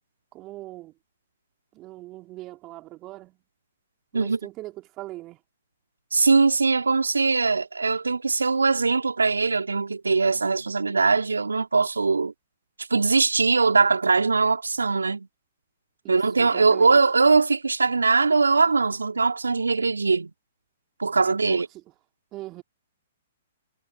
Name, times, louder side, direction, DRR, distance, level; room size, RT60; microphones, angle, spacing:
voice 1, 0.3-0.9 1.7-3.4 4.1-5.4 16.0-17.0 21.2-21.8 22.3-22.6, right 17 dB, 30° right, 3.9 m, -41 dB
voice 2, 6.1-12.3 12.8-15.3 16.1-20.3 21.0-21.7, right 4 dB, 80° right, 3.6 m, -21 dB
figure-of-eight pair, 120°, 0 cm